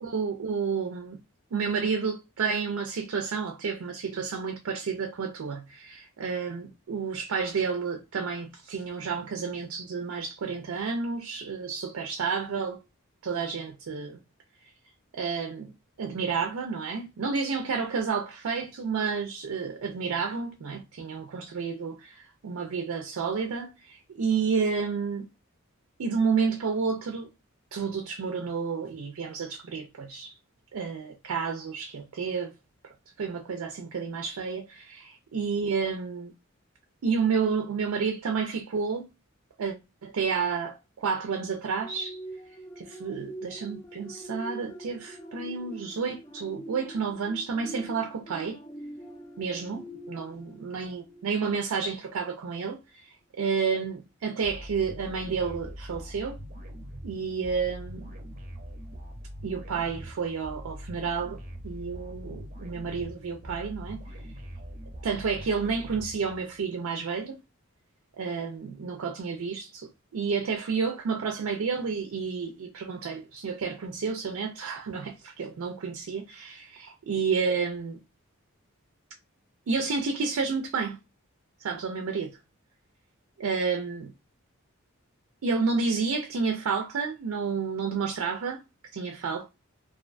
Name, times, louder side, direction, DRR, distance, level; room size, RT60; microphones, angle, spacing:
voice 1, 0.0-1.2 1.5-12.8 13.2-14.2 15.1-15.7 16.0-25.3 26.0-27.3 27.7-30.4 30.7-32.5 32.8-36.3 37.0-39.0 39.6-39.7 40.0-42.2 42.8-48.6 49.4-53.0 53.4-56.4 57.0-58.1 59.4-61.4 61.6-64.2 65.0-67.4 68.2-78.0 79.7-81.0 81.6-82.4 83.4-84.1 85.4-88.6 88.9-89.5, right 5 dB, 85° right, 0.4 m, -30 dB
sound 1, 41.8-51.7 52.1-52.3, right 1 dB, 20° left, 0.4 m, -44 dB
sound 2, 54.4-66.7, equal, 40° right, 0.6 m, -42 dB
2.4 x 2.2 x 2.4 m
head